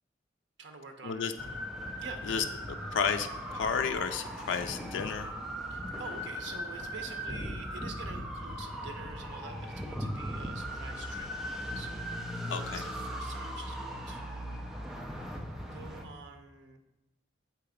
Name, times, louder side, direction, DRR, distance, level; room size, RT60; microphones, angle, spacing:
voice 1, 0.6-1.3 2.0-2.3 5.7-14.7 15.7-16.8, right 4 dB, 70° right, 5 dB, 0.6 m, -48 dB
sound 1, 1.4-16.1, equal, ahead, 0.5 m, -38 dB
voice 2, 2.3-5.3 12.5-12.8, left 6 dB, 85° left, 7 dB, 0.4 m, -32 dB
7.7 x 2.9 x 5.0 m, 0.96 s
head